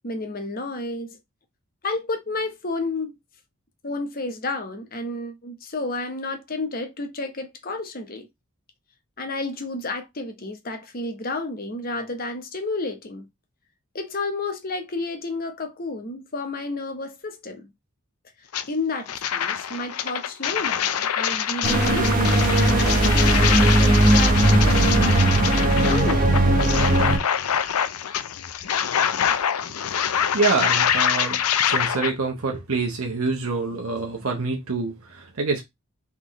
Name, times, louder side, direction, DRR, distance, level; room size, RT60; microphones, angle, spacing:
voice 1, 0.0-1.2 1.8-3.2 3.8-8.3 9.2-13.3 13.9-17.7 18.7-25.2 25.9-26.4, left 3 dB, 40° left, 1.0 m, -31 dB
sound 1, 18.5-18.6 19.1-32.1, left 8 dB, 85° left, 0.5 m, -25 dB
sound 2, 21.6-27.2, right 1 dB, 40° right, 0.9 m, -18 dB
voice 2, 29.7-35.6, right 4 dB, 75° right, 1.0 m, -26 dB
4.0 x 3.6 x 3.1 m
head